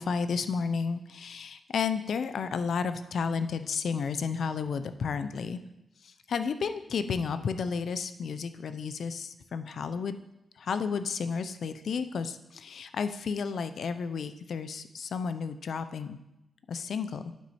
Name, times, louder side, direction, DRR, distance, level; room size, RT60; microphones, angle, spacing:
voice 1, 0.0-5.6 6.3-10.2 10.6-16.2 16.7-17.2, left 5 dB, 65° left, 11 dB, 0.5 m, -32 dB
8.5 x 6.1 x 4.3 m, 0.88 s
wide cardioid pair, 160°, 0 cm